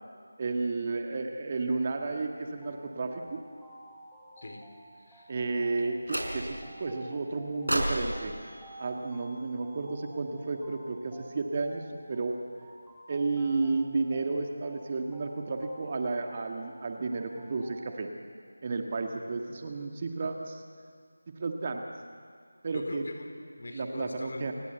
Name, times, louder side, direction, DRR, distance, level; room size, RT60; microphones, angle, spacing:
voice 1, 0.4-3.4 5.3-8.3 8.8-12.3 13.1-18.1 18.6-20.6 21.4-21.8 22.6-23.0 23.7-24.5, right 3 dB, 30° right, 4 dB, 1.9 m, -32 dB
sound 1, 1.7-18.0, right 1 dB, 5° right, 3.0 m, -52 dB
voice 2, 4.9-5.3 5.8-5.9 22.7-24.5, left 2 dB, 50° left, 5 dB, 3.7 m, -42 dB
sound 2, 6.1-6.7 7.7-9.9, right 1 dB, 85° right, 4.7 m, -34 dB
28.5 x 19.0 x 8.1 m, 2.1 s
figure-of-eight pair, 165°, 0 cm